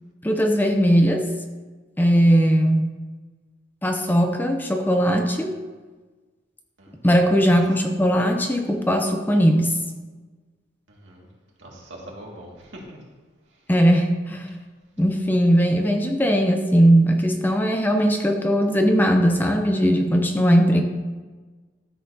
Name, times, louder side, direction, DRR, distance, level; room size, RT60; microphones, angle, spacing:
voice 1, 0.2-1.3 2.0-2.9 3.8-5.5 7.0-9.8 13.7-14.5 15.0-20.8, equal, 10° left, 4 dB, 0.5 m, -19 dB
voice 2, 10.9-11.3 11.6-13.0, right 1 dB, 70° right, -3 dB, 2.0 m, -42 dB
13.0 x 6.5 x 2.7 m, 1.3 s
head